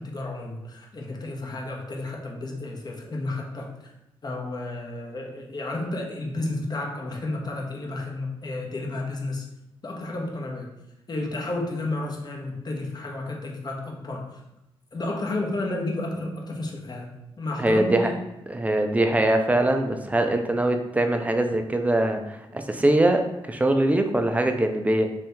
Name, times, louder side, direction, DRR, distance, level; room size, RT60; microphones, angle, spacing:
voice 1, 0.0-3.9 4.2-9.5 9.8-10.7 11.1-14.4 14.9-18.1, left 2 dB, 40° left, -1 dB, 0.8 m, -32 dB
voice 2, 17.6-18.1 18.5-25.1, right 1 dB, 15° right, 6 dB, 0.4 m, -22 dB
2.8 x 2.7 x 3.4 m, 0.90 s
cardioid pair, 75°, 11 cm